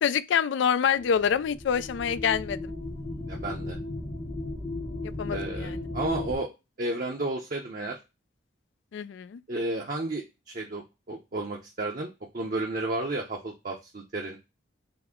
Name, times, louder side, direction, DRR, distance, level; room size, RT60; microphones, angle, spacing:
voice 1, 0.0-2.7 5.0-5.7 8.9-9.4, left 7 dB, 75° left, 0.3 m, -26 dB
sound 1, 1.0-6.4, left 2 dB, 30° left, 0.8 m, -36 dB
voice 2, 3.3-3.8 5.3-6.5 6.8-8.0 9.5-10.8 11.1-14.4, right 2 dB, 45° right, 0.6 m, -32 dB
5.8 x 2.0 x 3.6 m
head